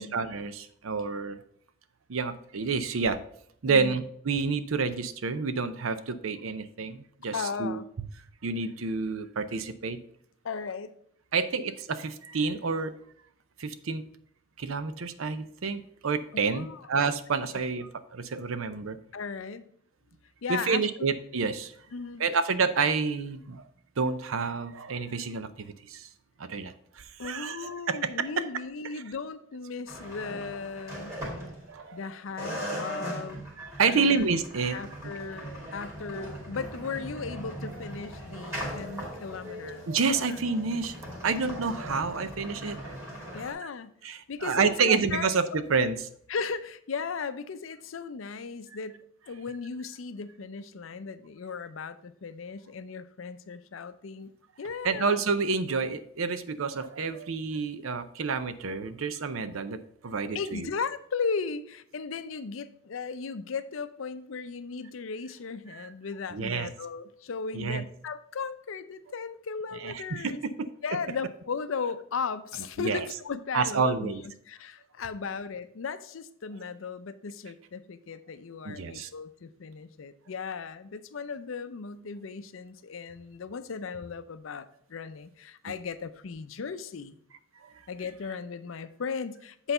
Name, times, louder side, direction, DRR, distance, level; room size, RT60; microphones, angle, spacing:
voice 1, 0.0-1.4 2.1-3.2 3.6-7.8 8.4-10.0 11.3-12.9 13.6-14.0 14.6-19.0 20.5-21.7 22.2-23.6 24.0-26.1 26.4-28.0 31.7-32.0 33.6-35.0 38.3-38.4 39.9-41.0 41.2-43.0 44.0-46.0 54.8-60.7 65.7-65.9 66.3-66.7 67.5-67.8 69.8-70.7 72.8-73.0 73.5-74.2 78.6-79.1, right 4 dB, 85° right, 12 dB, 0.6 m, -29 dB
voice 2, 3.7-4.0 7.3-7.9 10.4-10.9 16.5-16.9 17.5-17.6 19.1-19.7 20.4-21.1 21.9-22.2 27.2-31.2 31.9-33.5 33.9-34.2 34.7-39.9 43.3-44.0 44.3-45.6 46.3-54.3 54.6-55.2 60.3-70.4 70.8-74.1 74.5-87.1 87.9-89.7, left 5 dB, 75° left, 13 dB, 0.5 m, -36 dB
sound 1, 29.9-32.0 32.4-43.5, equal, 15° right, 2.3 m, -39 dB
8.1 x 4.0 x 5.4 m, 0.66 s
head